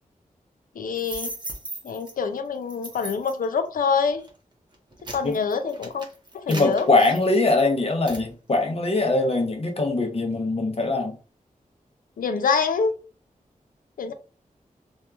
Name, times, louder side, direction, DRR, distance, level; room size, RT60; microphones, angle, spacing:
voice 1, 0.8-1.3 1.8-4.2 5.1-6.1 6.3-6.9 12.2-12.9 14.0-14.1, left 5 dB, 85° left, 0.4 m, -25 dB
sound 1, 0.9-2.1 2.7-3.4 4.1-4.3 4.7-7.6 8.1-8.3, right 1 dB, 30° right, 0.7 m, -37 dB
voice 2, 6.5-11.2, left 2 dB, 45° left, 0.7 m, -22 dB
2.8 x 2.3 x 2.3 m
wide cardioid pair, 105°, 14 cm